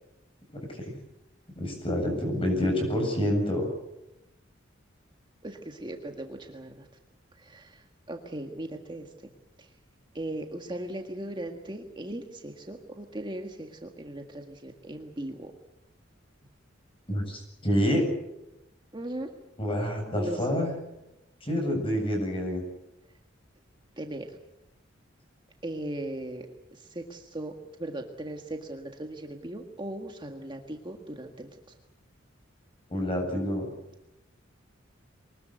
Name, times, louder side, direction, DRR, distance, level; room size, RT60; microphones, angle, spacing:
voice 1, 1.6-3.7 17.1-18.1 19.6-20.7 21.4-22.6 32.9-33.6, equal, 30° left, 3 dB, 7.9 m, -27 dB
voice 2, 5.4-6.8 7.5-7.7 8.1-9.1 10.1-15.5 18.9-19.3 20.2-20.4 24.0-24.3 25.6-26.4 26.9-27.5 27.8-31.5, right 1 dB, 25° right, 3 dB, 1.8 m, -38 dB
24.5 x 20.0 x 8.0 m, 0.90 s
head